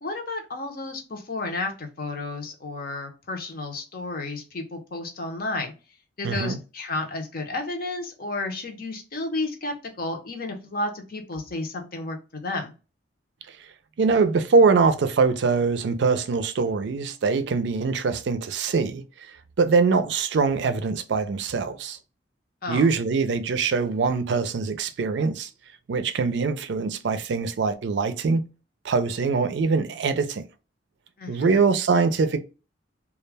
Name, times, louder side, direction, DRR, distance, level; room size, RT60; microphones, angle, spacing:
voice 1, 0.0-5.7 6.2-12.7 22.6-22.9 31.2-31.6, left 2 dB, 55° left, 0.7 m, -32 dB
voice 2, 6.2-6.6 13.5-13.6 14.0-19.0 19.6-22.0 22.7-25.5 25.9-28.4 28.8-30.4 31.3-32.4, right 4 dB, 70° right, 0.4 m, -23 dB
2.3 x 2.1 x 3.2 m
head